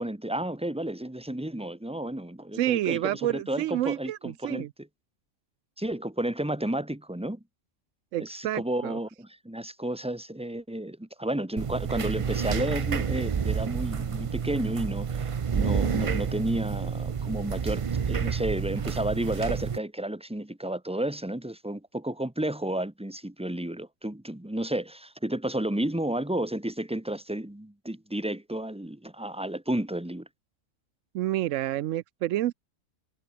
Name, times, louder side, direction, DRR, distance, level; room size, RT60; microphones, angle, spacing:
voice 1, 0.0-4.9 5.8-7.4 8.2-15.1 15.5-30.3, right 1 dB, 5° right, 1.7 m, -32 dB
voice 2, 2.5-4.7 8.1-9.0 31.1-32.5, right 14 dB, 75° right, 0.9 m, -29 dB
sound 1, 11.6-19.8, right 6 dB, 55° right, 0.3 m, -29 dB
omnidirectional pair, 1.4 m